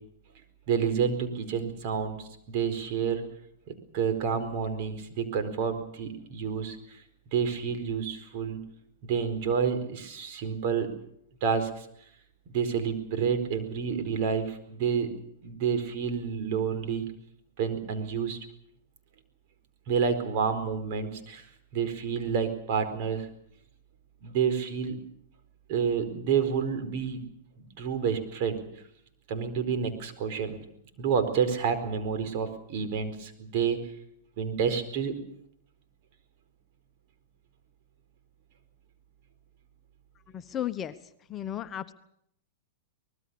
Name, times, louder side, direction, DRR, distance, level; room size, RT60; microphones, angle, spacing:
voice 1, 0.7-3.2 3.9-6.8 7.3-8.6 9.1-10.9 11.4-11.9 12.5-15.1 15.4-17.1 17.6-18.4 19.9-21.4 21.7-23.3 24.2-25.0 25.7-27.2 27.6-28.6 29.3-30.5 31.0-33.8 34.4-35.2, right 6 dB, 55° right, 8 dB, 4.4 m, -29 dB
voice 2, 40.3-40.9 41.3-41.9, left 11 dB, 25° left, 10 dB, 1.1 m, -34 dB
24.5 x 20.0 x 7.1 m, 0.71 s
hypercardioid pair, 115°, 0 cm